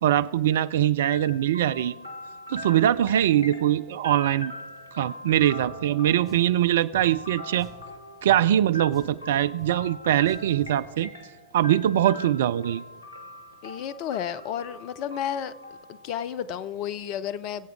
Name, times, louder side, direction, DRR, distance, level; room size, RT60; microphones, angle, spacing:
voice 1, 0.0-2.0 2.5-4.5 5.0-7.7 8.2-11.1 11.5-12.8, right 11 dB, 60° right, 0.3 m, -22 dB
sound 1, 1.0-16.8, left 1 dB, 75° left, 1.4 m, -42 dB
Drum, 5.6-5.7 6.3-6.5 6.9-7.1 7.6-7.9 8.3-8.4 8.9-9.2 9.6-9.7 10.3-10.8, right 6 dB, 25° right, 4.2 m, -47 dB
voice 2, 13.6-15.5 15.9-17.7, left 9 dB, 40° left, 0.5 m, -32 dB
21.5 x 8.0 x 4.7 m
figure-of-eight pair, 90°, 0 cm